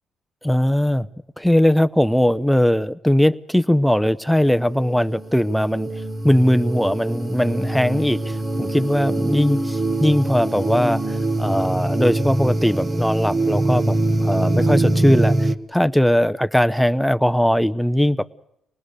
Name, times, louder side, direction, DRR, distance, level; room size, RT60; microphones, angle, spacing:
voice 1, 0.4-1.1 1.4-18.3, equal, ahead, 12 dB, 0.8 m, -19 dB
sound 1, 4.5-15.5, right 2 dB, 30° right, 1.9 m, -23 dB
26.0 x 19.5 x 6.6 m, 0.82 s
cardioid pair, 90°, 0 cm